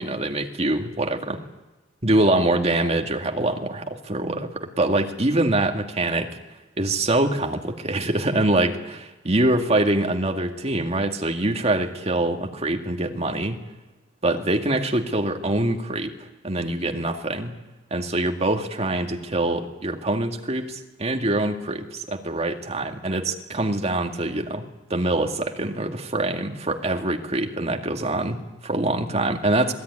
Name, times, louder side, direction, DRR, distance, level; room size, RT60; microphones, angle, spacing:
voice 1, 0.0-1.4 2.0-6.3 6.8-13.6 14.2-16.1 16.4-17.5 17.9-24.6 24.9-29.7, right 2 dB, 35° right, 3 dB, 2.2 m, -24 dB
26.5 x 19.0 x 9.8 m, 1.1 s
head